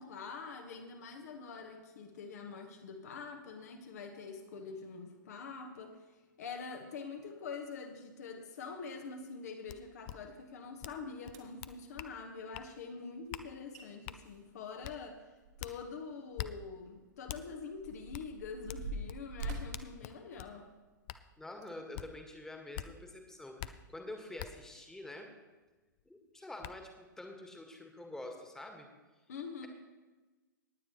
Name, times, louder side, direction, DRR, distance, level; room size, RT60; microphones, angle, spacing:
voice 1, 0.0-6.0 6.4-15.2 15.6-20.7 29.3-29.7, left 5 dB, 50° left, 4 dB, 1.3 m, -45 dB
sound 1, 9.7-9.8 10.0-10.2 10.8-11.0 11.2-12.1 12.5-12.7 13.3-13.5 14.1-14.2 14.8-15.0 15.6-15.7 16.4-16.5 17.3-17.4 18.1-18.3 18.7-20.5 21.1-21.2 21.9-22.1 22.7-22.9 23.6-23.7 24.4-24.5 26.0-26.1 26.6-26.7, left 14 dB, 35° left, 0.5 m, -43 dB
sound 2, 11.3-11.7 13.4-13.5 13.7-13.8 14.2-16.0 16.3-16.5 17.2-20.9 21.5-21.7 22.3-22.5, right 1 dB, 55° right, 2.0 m, -44 dB
voice 2, 21.4-25.3 26.0-28.9, left 1 dB, 5° left, 3 dB, 1.7 m, -47 dB
19.0 x 9.1 x 3.1 m, 1.2 s
figure-of-eight pair, 110°, 11 cm